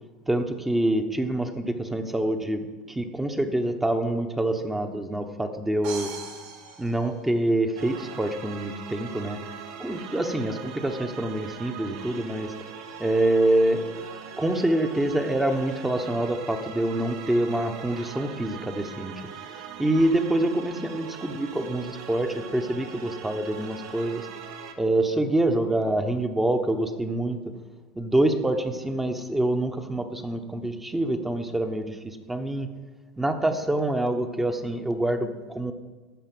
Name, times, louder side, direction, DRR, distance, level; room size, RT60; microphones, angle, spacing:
voice 1, 0.3-6.1 6.8-9.4 9.8-12.5 13.0-13.9 14.4-19.4 19.8-24.3 24.8-27.4 27.9-32.7 33.2-35.7, right 1 dB, 10° right, 6 dB, 0.8 m, -26 dB
sound 1, 5.8-7.8, right 6 dB, 65° right, 2.9 m, -40 dB
sound 2, 7.8-24.7, right 6 dB, 80° right, 1.3 m, -41 dB
12.5 x 4.7 x 7.6 m, 1.3 s
supercardioid pair, 130°, 3 cm